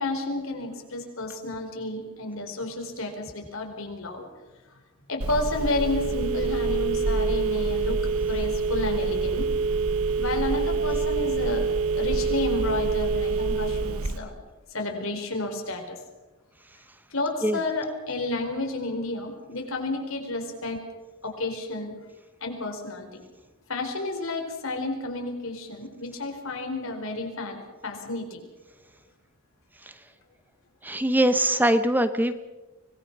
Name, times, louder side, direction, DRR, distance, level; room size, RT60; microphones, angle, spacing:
voice 1, 0.0-4.3 5.1-9.5 10.2-11.7 12.0-14.3 14.7-16.0 17.1-20.8 21.2-22.0 22.4-23.2 23.7-28.4, left 2 dB, 65° left, 3 dB, 4.6 m, -31 dB
Telephone, 5.2-14.2, right 4 dB, 80° right, 1.2 m, -26 dB
voice 2, 30.8-32.3, right 1 dB, 10° right, 11 dB, 0.8 m, -22 dB
25.0 x 19.5 x 6.1 m, 1.1 s
head